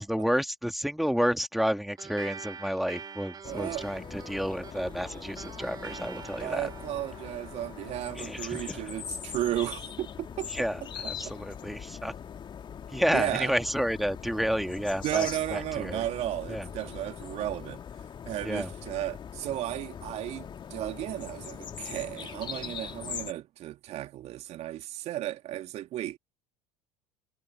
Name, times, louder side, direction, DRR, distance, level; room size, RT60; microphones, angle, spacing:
voice 1, 0.0-6.7 8.2-8.8 10.5-10.8 11.1-12.1 12.9-16.0 16.5-16.7 18.4-18.7, equal, ahead, 2.8 m, -30 dB
sound 1, 2.0-10.8, right 6 dB, 25° right, 3.2 m, -46 dB
sound 2, 3.4-23.3, left 8 dB, 30° left, 2.6 m, -41 dB
voice 2, 3.4-3.9 6.4-10.5 13.1-13.5 15.0-17.8 18.3-26.2, right 13 dB, 45° right, 2.8 m, -34 dB
figure-of-eight pair, 70°, 15 cm